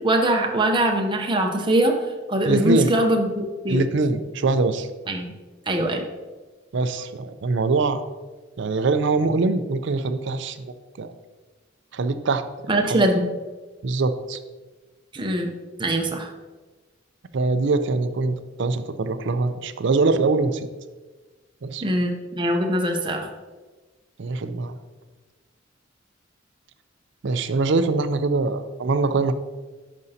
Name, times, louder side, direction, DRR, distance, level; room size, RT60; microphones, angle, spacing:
voice 1, 0.0-2.0 2.3-3.8 5.1-5.3 5.7-6.1 12.7-13.3 15.1-15.5 15.8-16.3 21.8-23.3, right 1 dB, 25° right, 3 dB, 0.6 m, -22 dB
voice 2, 2.5-2.9 3.7-4.9 6.7-8.0 8.6-10.6 11.0-11.1 11.9-12.4 12.9-13.0 13.8-14.4 17.3-20.7 21.6-21.8 24.2-24.8 27.2-29.3, right 3 dB, 70° right, 11 dB, 0.5 m, -23 dB
11.0 x 5.3 x 2.8 m, 1.3 s
head